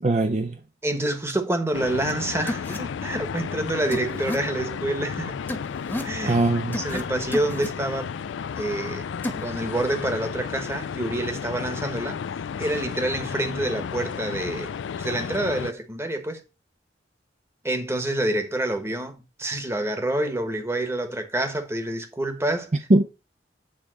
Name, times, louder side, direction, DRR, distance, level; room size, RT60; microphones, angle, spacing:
voice 1, 0.0-0.6 6.2-6.8 22.9-23.0, right 2 dB, 40° right, 0.5 m, -20 dB
voice 2, 0.8-5.4 6.0-6.4 6.7-8.1 8.6-9.1 9.4-12.2 12.6-14.7 15.0-16.4 17.6-22.9, right 1 dB, 15° right, 1.2 m, -27 dB
sound 1, 1.7-15.7, left 7 dB, 85° left, 0.4 m, -33 dB
sound 2, 2.1-2.2 2.5-2.8 3.9-4.4 5.5-6.1 6.7-7.0 7.3-7.7 9.2-9.4, left 1 dB, 10° left, 1.1 m, -31 dB
9.0 x 3.5 x 6.2 m
head